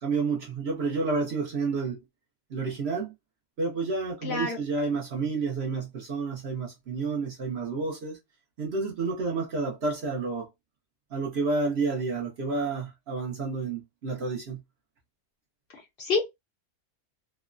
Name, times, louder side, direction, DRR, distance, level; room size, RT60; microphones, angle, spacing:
voice 1, 0.0-2.0 2.5-3.1 3.6-8.2 8.6-10.5 11.1-14.6, right 4 dB, 55° right, 0.8 m, -30 dB
voice 2, 4.2-4.6 15.7-16.3, left 4 dB, 60° left, 0.8 m, -28 dB
3.0 x 2.0 x 2.3 m
omnidirectional pair, 1.5 m